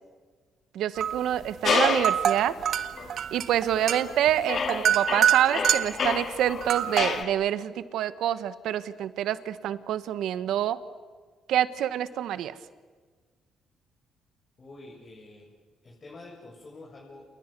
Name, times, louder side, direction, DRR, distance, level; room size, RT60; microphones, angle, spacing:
voice 1, 0.7-2.5 3.3-10.8 11.5-12.6, right 11 dB, 80° right, 13 dB, 1.3 m, -27 dB
sound 1, 1.0-1.3 1.7-6.1 6.6-7.2, right 9 dB, 65° right, 1.6 m, -26 dB
sound 2, 1.6-2.3 3.0-3.1 3.8-4.1 4.5-7.3, left 5 dB, 50° left, 2.5 m, -29 dB
voice 2, 14.6-15.5 15.8-17.3, left 2 dB, 35° left, -3 dB, 7.7 m, -47 dB
29.5 x 28.5 x 6.9 m, 1.5 s
cardioid pair, 90°, 0 cm